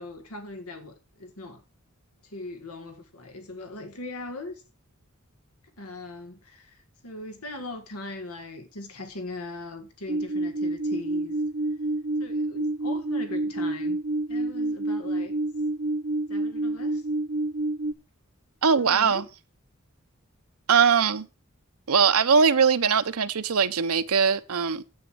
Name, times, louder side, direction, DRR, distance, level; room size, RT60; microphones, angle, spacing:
voice 1, 0.0-1.6 2.2-4.6 5.8-11.4 12.2-14.0 14.3-15.4 16.3-17.0 18.8-19.3, left 2 dB, 90° left, 1.9 m, -40 dB
sound 1, 10.1-17.9, right 2 dB, 40° right, 0.7 m, -28 dB
voice 2, 18.6-19.3 20.7-21.3 21.9-24.8, right 6 dB, 75° right, 0.8 m, -21 dB
9.5 x 8.2 x 6.2 m
head